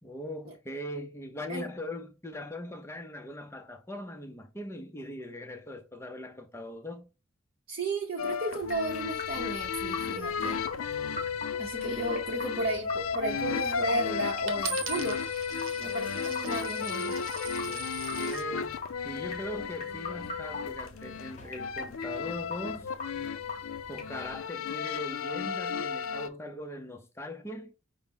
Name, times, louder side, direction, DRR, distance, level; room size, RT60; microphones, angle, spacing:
voice 1, 0.0-7.1 17.6-22.9 23.9-27.7, left 1 dB, 10° left, 0.5 m, -40 dB
voice 2, 7.7-10.6 11.6-15.2 15.8-17.2, right 2 dB, 45° right, 0.7 m, -34 dB
sound 1, 8.2-26.3, left 6 dB, 80° left, 0.4 m, -34 dB
sound 2, 8.6-24.4, left 3 dB, 35° left, 0.9 m, -44 dB
Coin (dropping), 14.5-18.5 19.2-19.6, right 8 dB, 80° right, 0.7 m, -41 dB
5.5 x 2.0 x 3.4 m
head